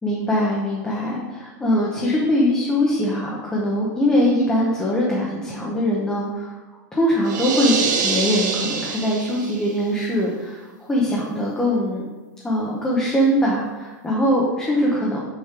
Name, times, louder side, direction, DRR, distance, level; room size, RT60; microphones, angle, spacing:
voice 1, 0.0-6.6 6.9-12.0 12.4-15.2, equal, 10° left, -5 dB, 1.0 m, -22 dB
sound 1, 7.2-9.8, right 5 dB, 75° right, 1.0 m, -25 dB
6.6 x 3.2 x 5.9 m, 1.3 s
supercardioid pair, 150°, 10 cm